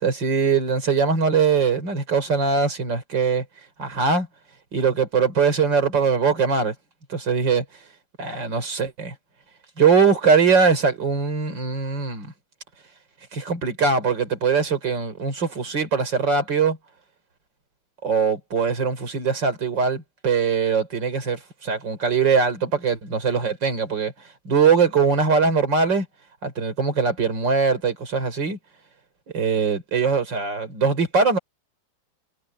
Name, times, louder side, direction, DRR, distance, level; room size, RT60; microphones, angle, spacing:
voice 1, 0.0-3.4 3.8-4.3 4.7-6.7 7.1-7.6 8.2-9.1 9.8-12.3 13.3-16.8 18.0-24.1 24.4-26.1 26.4-28.6 29.3-31.4, right 5 dB, 60° right, 4.6 m, -21 dB
omnidirectional pair, 2.2 m